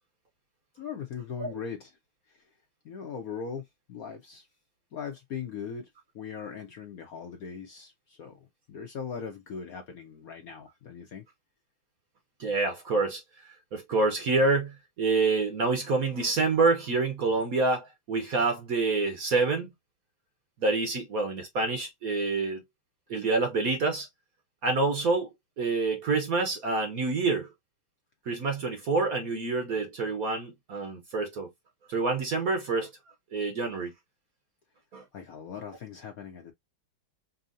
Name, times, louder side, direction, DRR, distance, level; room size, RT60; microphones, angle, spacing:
voice 1, 0.7-1.9 2.3-2.5 2.8-4.5 4.9-5.9 6.1-8.4 8.7-11.2 35.1-36.5, left 6 dB, 60° left, 1.0 m, -39 dB
voice 2, 12.4-13.2 13.7-19.7 20.6-22.6 23.1-24.1 24.6-25.3 25.6-27.5 28.3-31.5 31.9-32.9 33.3-33.9 34.9-35.0, right 3 dB, 55° right, 1.1 m, -27 dB
5.4 x 2.8 x 2.5 m
omnidirectional pair, 2.3 m